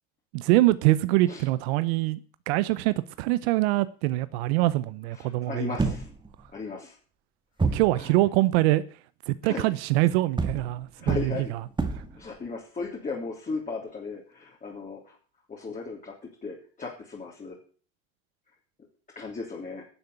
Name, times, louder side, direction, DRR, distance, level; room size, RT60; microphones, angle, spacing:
voice 1, 0.3-2.2 2.5-5.7 7.6-8.8 9.3-11.3, right 18 dB, 85° right, 0.7 m, -24 dB
voice 2, 5.1-6.1 6.5-6.9 7.7-8.2 9.4-9.7 11.0-11.5 12.1-15.2 15.5-16.1 16.4-17.6 19.1-19.8, left 4 dB, 25° left, 3.3 m, -36 dB
sound 1, 5.8-6.5 7.6-8.0 10.4-12.2, right 3 dB, 15° right, 1.9 m, -28 dB
11.5 x 6.9 x 8.0 m
supercardioid pair, 95°, 30 cm